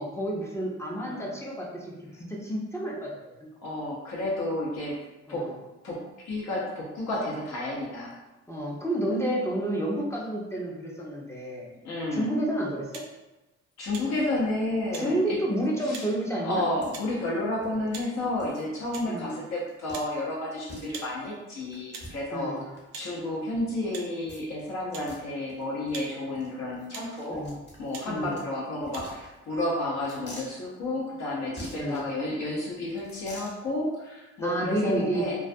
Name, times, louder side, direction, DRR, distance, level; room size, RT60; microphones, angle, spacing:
voice 1, 0.0-1.9 2.2-3.1 3.4-3.5 5.3-5.6 8.5-11.7 12.1-13.0 14.9-16.6 19.1-19.4 22.3-22.7 27.3-27.6 28.1-28.4 31.7-32.0 34.4-35.2, right 1 dB, 10° left, -4 dB, 0.5 m, -30 dB
voice 2, 0.9-1.3 3.6-5.0 5.3-5.5 5.8-6.0 6.2-8.1 11.8-12.3 13.8-15.4 15.8-16.0 16.4-22.5 22.9-27.4 27.8-35.4, left 1 dB, 60° left, -5 dB, 0.7 m, -31 dB
sound 1, 12.9-13.1 13.9-14.1 14.9-15.1 15.9-16.1 16.9-17.1 17.9-18.1 18.9-19.1 19.9-20.1 20.9-21.1 21.9-22.1 22.9-23.1 23.9-24.1 24.9-25.1 25.9-26.1 26.9-27.1 27.9-28.1 28.9-29.0, right 5 dB, 90° right, 0.5 m, -41 dB
sound 2, 16.8-16.9 17.2-17.3 17.6-17.7 18.4-18.6 19.1-19.3 19.6-20.0 20.3-20.4 20.7-21.1 21.7-23.0 24.3-24.7 24.9-25.2 25.5-25.6 25.9-26.1 26.3-26.5 26.8-28.4 28.8-29.6 30.0-30.5 31.6-32.0 32.9-33.5, equal, 35° left, 1.0 m, -46 dB
2.3 x 2.2 x 2.6 m, 1.0 s
cardioid pair, 90°, 30 cm